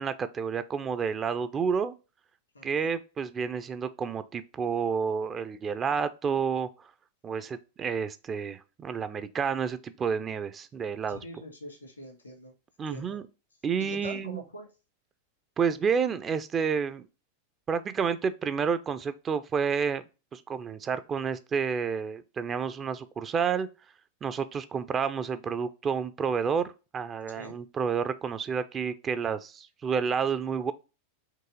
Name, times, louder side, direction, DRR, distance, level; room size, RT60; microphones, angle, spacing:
voice 1, 0.0-1.9 2.6-6.7 7.2-11.2 12.8-13.2 13.6-14.4 15.6-17.0 17.7-20.0 20.3-23.7 24.2-30.7, right 6 dB, 25° right, 0.4 m, -30 dB
voice 2, 2.5-2.9 11.1-12.5 12.9-13.2 13.9-14.7 27.3-27.6, equal, 80° left, 1.7 m, -43 dB
4.7 x 3.0 x 3.5 m
figure-of-eight pair, 90°, 0 cm